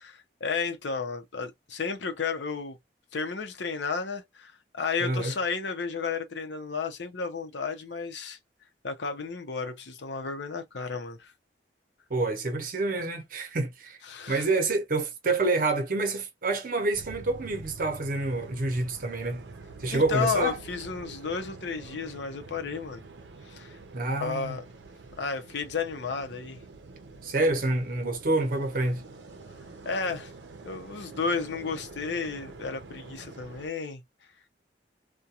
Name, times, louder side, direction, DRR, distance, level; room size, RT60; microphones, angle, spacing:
voice 1, 0.0-2.8 3.1-8.4 8.8-11.3 14.1-14.5 19.9-23.0 23.5-23.8 24.2-24.6 25.2-26.6 29.9-30.3 30.6-34.0, left 5 dB, 80° left, 0.6 m, -32 dB
voice 2, 5.0-5.3 12.1-14.0 14.3-19.4 19.8-20.6 23.9-24.6 27.2-29.0, right 2 dB, 50° right, 0.7 m, -27 dB
sound 1, 16.9-33.7, right 3 dB, 85° right, 0.6 m, -46 dB
2.3 x 2.2 x 2.8 m
head